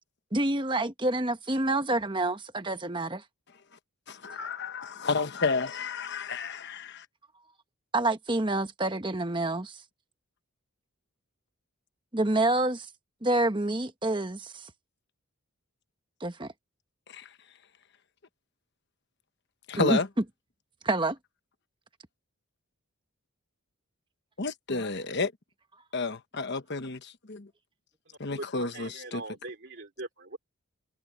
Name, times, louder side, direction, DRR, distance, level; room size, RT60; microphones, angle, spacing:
voice 1, 0.3-3.2 7.9-9.8 12.1-12.9 13.2-14.7 16.2-16.5 19.8-20.0 20.8-21.2, right 2 dB, 20° right, 1.1 m, -27 dB
voice 2, 4.1-7.0 17.1-17.3 19.7-20.1 24.4-25.3 25.9-27.5 28.2-29.2, left 4 dB, 50° left, 1.1 m, -31 dB
voice 3, 28.7-30.4, right 2 dB, 55° right, 2.9 m, -42 dB
head